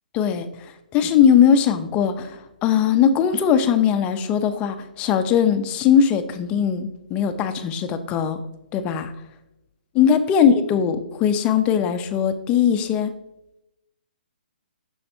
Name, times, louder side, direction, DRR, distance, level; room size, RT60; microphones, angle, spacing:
voice 1, 0.1-8.4 8.7-9.1 9.9-13.1, left 8 dB, 25° left, 9 dB, 0.6 m, -20 dB
7.6 x 6.3 x 2.6 m, 0.89 s
hypercardioid pair, 145°, 5 cm